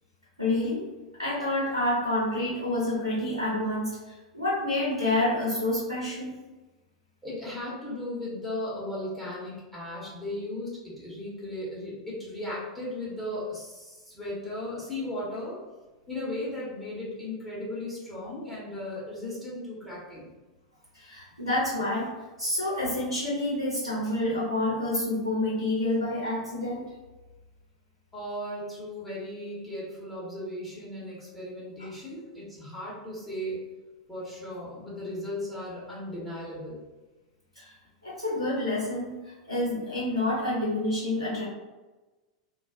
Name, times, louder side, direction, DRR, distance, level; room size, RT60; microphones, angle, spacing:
voice 1, 0.4-0.8 1.2-6.4 20.9-22.1 22.4-26.8 37.6-37.7 38.0-39.2 39.5-41.4, left 1 dB, 90° right, -8 dB, 0.8 m, -28 dB
voice 2, 7.2-15.6 16.1-20.3 28.1-33.6 34.1-36.8, left 1 dB, 5° left, -7 dB, 1.0 m, -36 dB
2.3 x 2.2 x 3.6 m, 1.2 s
figure-of-eight pair, 90°, 3 cm